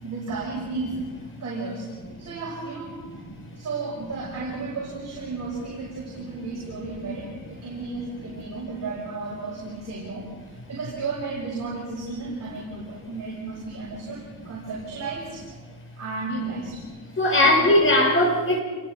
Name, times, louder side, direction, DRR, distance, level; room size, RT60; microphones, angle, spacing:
voice 1, 0.0-1.0 1.4-1.9 2.2-2.9 3.5-10.3 10.7-15.4 16.0-16.9 17.3-17.6, right 3 dB, 40° right, -6 dB, 7.4 m, -33 dB
voice 2, 3.1-3.5 17.2-18.6, left 1 dB, 30° left, 2 dB, 5.5 m, -20 dB
28.0 x 23.0 x 5.1 m, 1.4 s
cardioid pair, 120°, 39 cm